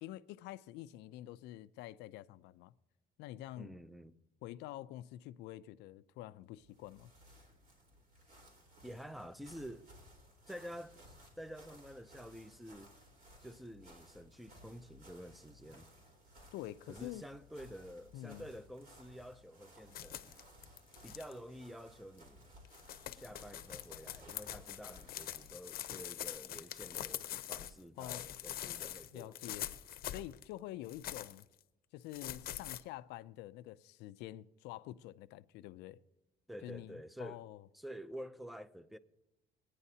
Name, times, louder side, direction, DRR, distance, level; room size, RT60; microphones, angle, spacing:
voice 1, 0.0-2.7 3.2-3.7 4.4-7.1 16.5-17.2 18.1-18.4 28.0-28.3 28.8-28.9 29.1-29.7 30.0-31.5 31.9-36.0 36.6-37.7, left 14 dB, 90° left, 0.4 m, -47 dB
voice 2, 3.6-4.1 8.8-9.9 10.5-12.9 13.4-15.9 16.9-20.4 21.0-22.5 23.1-29.7 36.5-37.5 37.7-39.0, equal, ahead, 0.5 m, -49 dB
sound 1, 6.5-25.6, equal, 60° right, 3.9 m, -60 dB
sound 2, 19.9-21.3 22.2-22.3 22.7-27.7 28.0-30.4 30.9-31.4 32.1-32.8, left 12 dB, 60° left, 0.7 m, -44 dB
19.5 x 9.8 x 2.8 m
cardioid pair, 110°, 17 cm